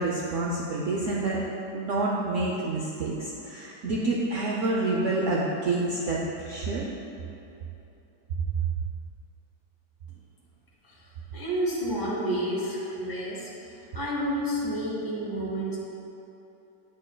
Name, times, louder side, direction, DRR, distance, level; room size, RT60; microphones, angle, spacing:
voice 1, 0.0-1.4 1.7-6.9, right 2 dB, 70° right, -3 dB, 0.7 m, -28 dB
voice 2, 11.3-15.8, equal, 20° right, -7 dB, 0.6 m, -30 dB
8.6 x 6.1 x 2.2 m, 2.9 s
omnidirectional pair, 1.9 m